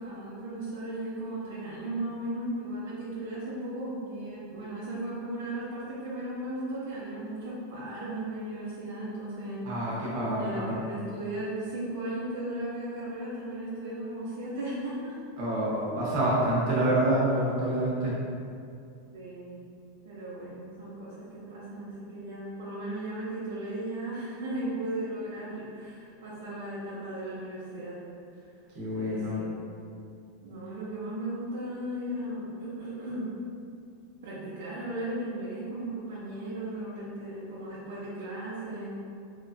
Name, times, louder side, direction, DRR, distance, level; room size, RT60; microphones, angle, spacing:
voice 1, 0.0-9.6 10.0-15.2 19.1-19.6 20.0-28.0 28.9-29.5 30.4-33.3 34.2-38.9, right 1 dB, 85° right, -8 dB, 0.6 m, -36 dB
voice 2, 9.6-10.8 15.4-18.1 28.7-29.4, right 1 dB, 55° right, -6 dB, 0.9 m, -27 dB
2.9 x 2.1 x 2.6 m, 2.4 s
supercardioid pair, 140°, 0 cm